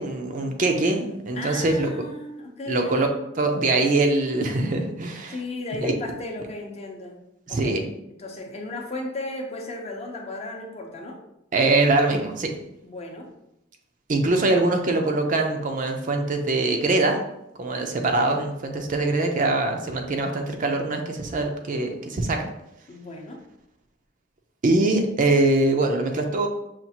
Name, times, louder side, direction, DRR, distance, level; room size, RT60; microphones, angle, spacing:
voice 1, 0.0-1.9 2.7-3.1 3.4-5.4 5.8-5.9 7.5-7.8 11.5-12.5 14.1-17.2 17.6-22.5 24.6-26.5, right 2 dB, 45° right, 3 dB, 0.5 m, -23 dB
voice 2, 1.3-3.1 5.3-7.2 7.5-7.8 8.1-11.2 12.8-13.3 18.2-18.4 22.9-23.4, left 2 dB, 35° left, 1 dB, 0.6 m, -35 dB
5.8 x 2.4 x 2.8 m, 0.83 s
head